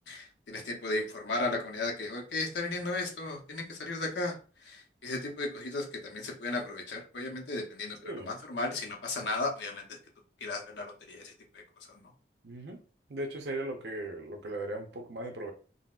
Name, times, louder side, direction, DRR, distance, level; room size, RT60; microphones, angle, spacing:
voice 1, 0.1-4.3 4.6-10.0 10.4-11.6 11.9-12.1, left 2 dB, 85° left, 1 dB, 0.8 m, -35 dB
voice 2, 12.4-12.8 13.1-15.5, right 1 dB, 70° right, 4 dB, 0.7 m, -37 dB
3.9 x 2.0 x 2.4 m, 0.37 s
head